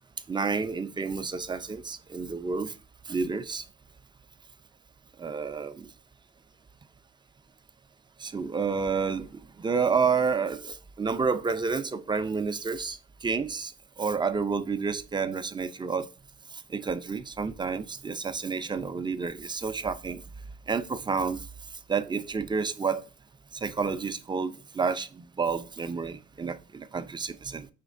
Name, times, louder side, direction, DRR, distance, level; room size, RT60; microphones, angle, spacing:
voice 1, 0.3-2.8 3.1-3.7 5.2-5.9 8.2-16.1 16.5-20.2 20.7-23.0 23.5-27.7, right 5 dB, 15° right, 0.3 m, -30 dB
5.0 x 3.1 x 2.4 m
cardioid pair, 90°, 30 cm